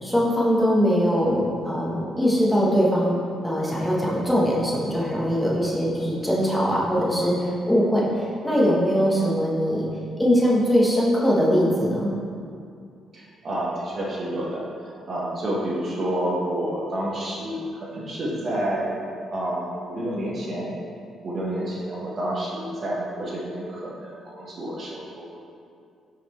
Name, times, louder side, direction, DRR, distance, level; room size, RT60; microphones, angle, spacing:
voice 1, 0.0-3.2 3.4-9.9 10.2-12.1, equal, 5° left, -5 dB, 1.2 m, -21 dB
voice 2, 13.1-19.0 19.3-20.7 21.2-25.4, right 1 dB, 45° right, -5 dB, 1.3 m, -29 dB
5.8 x 4.2 x 4.4 m, 2.4 s
cardioid pair, 90°, 0 cm